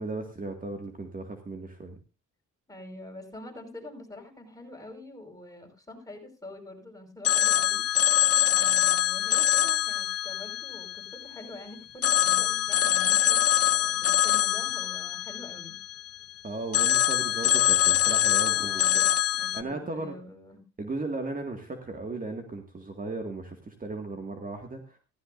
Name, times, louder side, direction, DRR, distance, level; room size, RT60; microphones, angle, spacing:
voice 1, 0.0-2.0 16.4-19.0 19.5-20.1 20.8-25.0, right 3 dB, 25° right, 4 dB, 2.1 m, -36 dB
voice 2, 2.7-8.1 8.4-15.8 17.2-17.3 18.4-20.6, left 1 dB, 10° left, 2 dB, 5.3 m, -46 dB
Telephone, 7.2-11.5 12.0-16.2 16.7-19.6, left 12 dB, 50° left, 0.8 m, -24 dB
15.5 x 15.0 x 2.6 m, 0.29 s
cardioid pair, 90°, 30 cm